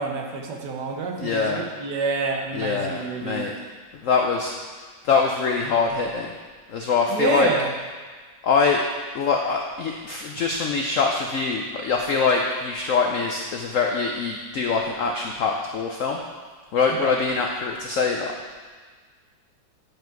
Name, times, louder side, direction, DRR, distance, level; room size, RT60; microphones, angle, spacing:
voice 1, 0.0-3.5 7.1-7.7 17.0-17.1, right 4 dB, 70° right, 2 dB, 1.4 m, -27 dB
voice 2, 1.2-1.6 2.5-3.5 3.9-4.5 5.0-6.3 6.7-7.5 8.4-8.8 9.1-16.2 16.7-18.3, left 4 dB, 75° left, 1 dB, 0.7 m, -23 dB
9.5 x 4.9 x 4.6 m, 1.5 s
omnidirectional pair, 2.0 m